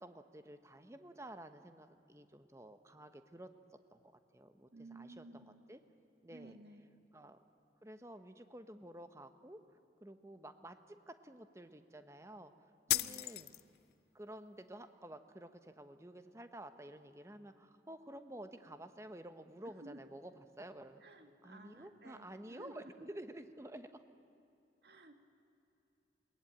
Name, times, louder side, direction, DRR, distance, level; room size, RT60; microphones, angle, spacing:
voice 1, 0.0-3.5 3.9-4.0 4.3-5.8 6.2-6.6 7.1-7.4 7.8-9.6 10.0-12.5 12.9-13.5 14.1-21.0 21.4-24.0, right 1 dB, 15° right, 9 dB, 0.9 m, -51 dB
voice 2, 4.7-5.6 6.3-6.9 12.9-13.2 19.8-20.0 21.0-22.8 24.8-25.1, right 2 dB, 65° right, 6 dB, 1.8 m, -55 dB
sound 1, 12.9-13.9, left 14 dB, 60° left, 0.5 m, -35 dB
21.5 x 19.5 x 8.7 m, 2.7 s
head